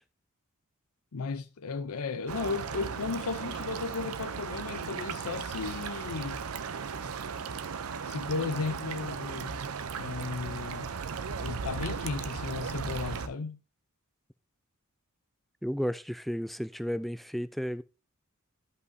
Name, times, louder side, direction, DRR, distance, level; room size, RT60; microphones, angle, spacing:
voice 1, 1.1-6.4 8.0-9.6 9.9-10.9 11.4-13.6, left 4 dB, 90° left, 0.6 m, -35 dB
sound 1, 2.3-13.3, right 5 dB, 75° right, 0.6 m, -36 dB
voice 2, 15.6-17.8, equal, ahead, 0.3 m, -33 dB
13.0 x 5.5 x 2.7 m
head